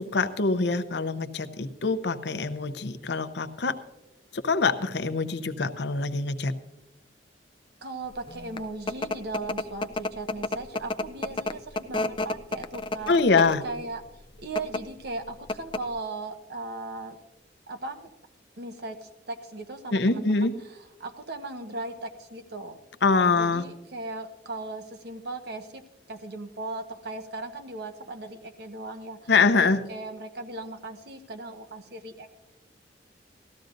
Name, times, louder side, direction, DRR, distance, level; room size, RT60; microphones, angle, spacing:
voice 1, 0.0-3.7 4.3-6.5 13.1-13.6 19.9-20.5 23.0-23.6 29.3-29.8, left 4 dB, 65° left, 9 dB, 0.7 m, -24 dB
voice 2, 7.8-13.1 13.6-14.0 14.4-17.2 17.7-18.0 18.6-22.8 23.3-25.8 26.1-29.3 29.6-32.3, right 2 dB, 65° right, 6 dB, 1.2 m, -38 dB
sound 1, 8.3-13.7 14.4-14.8 15.2-15.3 15.5-16.0, left 2 dB, 30° left, 0.4 m, -30 dB
18.5 x 14.0 x 2.6 m, 1.0 s
head